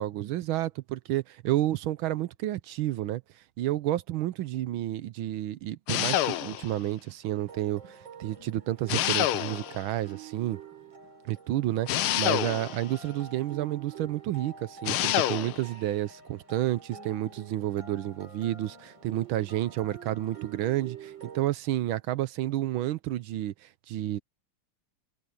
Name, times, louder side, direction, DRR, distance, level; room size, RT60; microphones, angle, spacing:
voice 1, 0.0-3.2 3.6-10.6 11.2-24.2, right 14 dB, 75° right, 1.5 m, -30 dB
sound 1, 5.9-6.8 8.9-9.9 11.9-12.9 14.9-15.6, left 12 dB, 90° left, 1.7 m, -27 dB
sound 2, 7.3-21.5, right 6 dB, 60° right, 5.3 m, -47 dB
omnidirectional pair, 2.3 m